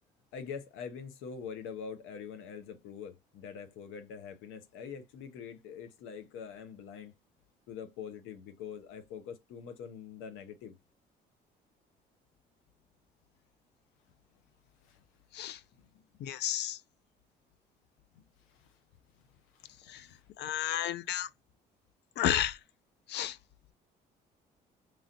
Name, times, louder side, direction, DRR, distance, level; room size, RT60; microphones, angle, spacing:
voice 1, 0.3-7.1 7.7-10.8 14.8-15.0 15.7-16.0 18.1-18.8 19.5-20.2 20.5-20.7, left 6 dB, 75° left, 0.8 m, -45 dB
voice 2, 16.2-16.8 19.9-20.1 20.4-21.3 22.2-22.6 23.1-23.4, left 12 dB, 55° left, 0.4 m, -32 dB
3.1 x 2.5 x 2.6 m
hypercardioid pair, 60°, 21 cm